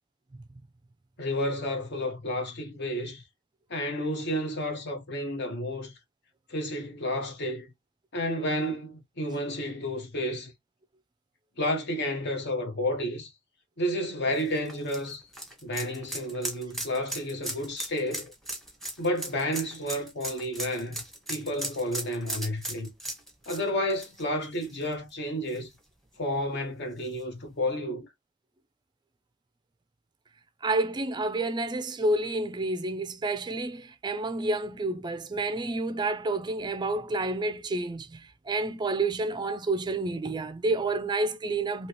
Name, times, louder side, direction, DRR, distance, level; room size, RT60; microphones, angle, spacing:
voice 1, 1.2-3.2 3.7-5.9 6.5-7.7 8.1-10.5 11.6-13.3 13.8-15.2 15.6-18.3 19.0-21.0 21.3-22.9 23.5-25.7 26.2-28.1, left 1 dB, 55° left, 1.1 m, -31 dB
sound 1, 14.3-25.1 25.5-25.6 27.0-27.1, right 1 dB, ahead, 1.0 m, -37 dB
voice 2, 30.6-41.9, right 2 dB, 20° right, 0.4 m, -29 dB
3.0 x 2.8 x 2.9 m
head